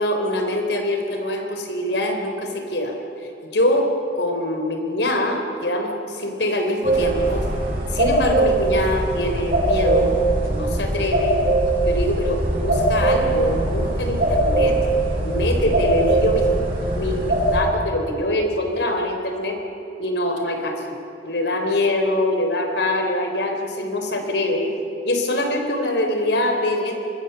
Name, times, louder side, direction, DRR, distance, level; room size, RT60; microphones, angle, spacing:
voice 1, 0.0-7.5 7.9-10.1 10.5-11.4 11.9-14.8 15.2-16.5 16.9-19.6 20.0-21.0 21.2-24.7 25.0-26.9, left 1 dB, 80° left, 4 dB, 3.7 m, -24 dB
sound 1, 6.8-17.6, right 2 dB, 55° right, 7.7 m, -21 dB
24.5 x 21.5 x 6.9 m, 2.9 s
head